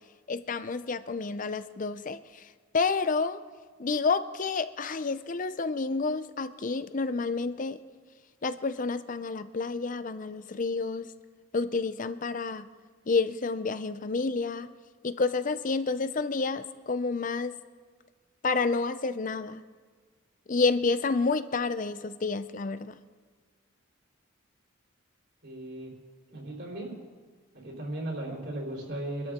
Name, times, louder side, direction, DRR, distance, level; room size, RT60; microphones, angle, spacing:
voice 1, 0.3-2.4 2.7-3.4 3.8-7.8 8.4-11.1 11.5-12.7 13.1-14.7 15.0-17.6 18.4-19.6 20.5-23.0, left 4 dB, 40° left, 13 dB, 0.5 m, -29 dB
voice 2, 25.4-25.9 26.3-26.9 27.5-29.3, right 1 dB, 55° right, -2 dB, 4.0 m, -36 dB
24.5 x 13.0 x 3.7 m, 1.6 s
head